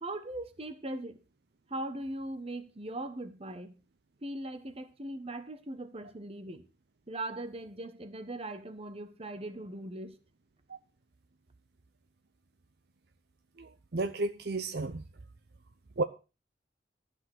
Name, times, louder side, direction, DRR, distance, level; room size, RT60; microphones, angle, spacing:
voice 1, 0.0-1.2 1.7-3.8 4.2-6.7 7.1-10.2, right 1 dB, 35° right, 1.2 m, -40 dB
voice 2, 13.6-15.0 16.0-16.1, right 3 dB, 60° right, 0.7 m, -33 dB
12.5 x 6.4 x 6.3 m
head